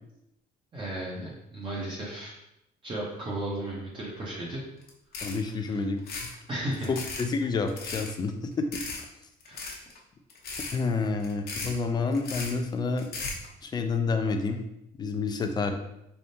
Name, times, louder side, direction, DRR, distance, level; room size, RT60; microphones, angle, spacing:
voice 1, 0.7-2.3 2.8-4.6 5.4-5.8 6.5-7.0 9.4-9.7, right 1 dB, 30° right, -6 dB, 0.8 m, -35 dB
sound 1, 4.8-4.9 5.1-5.5 6.0-6.4 6.7-7.2 7.7-8.1 8.7-9.0 9.4-10.0 10.3-10.8 11.2-11.8 12.1-12.5 13.0-13.5, left 4 dB, 60° left, 0.9 m, -36 dB
voice 2, 5.2-6.0 6.9-8.8 10.7-13.1 13.6-14.6 15.0-15.7, left 4 dB, 25° left, 6 dB, 0.4 m, -29 dB
4.0 x 3.5 x 2.7 m, 0.85 s
cardioid pair, 150°, 18 cm